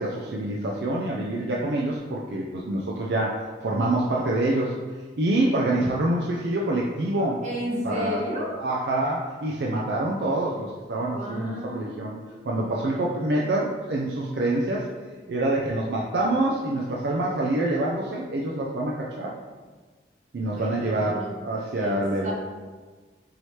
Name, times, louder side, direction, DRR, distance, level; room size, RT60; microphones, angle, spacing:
voice 1, 0.0-4.8 5.2-7.4 7.8-8.2 8.6-12.2 12.4-14.9 15.3-19.3 20.3-22.3, right 1 dB, 70° right, -3 dB, 0.4 m, -26 dB
voice 2, 7.4-8.5 11.1-13.0 20.4-21.4 21.7-22.3, equal, 45° right, -4 dB, 0.9 m, -34 dB
4.7 x 2.8 x 3.1 m, 1.4 s
head